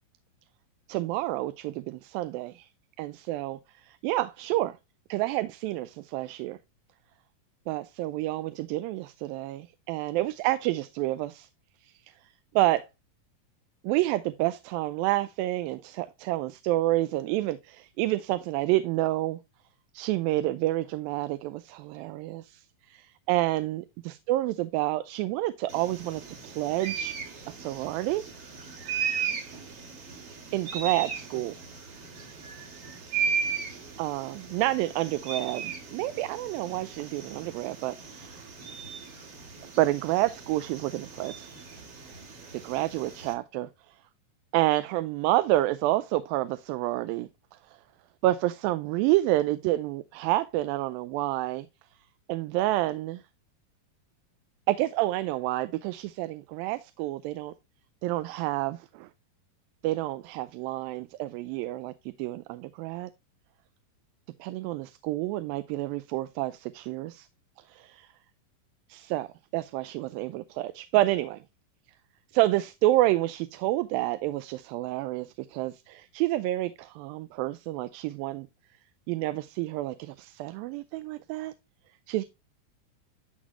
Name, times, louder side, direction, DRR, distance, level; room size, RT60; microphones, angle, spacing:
voice 1, 0.9-2.7 3.0-4.8 5.1-6.6 7.7-11.5 11.8-11.9 12.6-12.9 13.8-19.4 19.9-27.2 27.5-28.2 30.5-31.5 34.0-38.5 39.8-41.5 42.6-44.0 44.5-47.3 47.7-47.8 48.2-51.7 52.3-53.2 54.7-57.5 58.0-59.1 59.8-63.1 64.4-67.3 67.7-68.1 68.9-69.3 69.5-71.4 72.3-78.5 79.1-81.5 82.1-82.2, right 16 dB, 85° right, 2.3 m, -29 dB
sound 1, 25.7-43.3, right 6 dB, 50° right, 2.4 m, -37 dB
12.0 x 4.1 x 3.0 m
omnidirectional pair, 4.1 m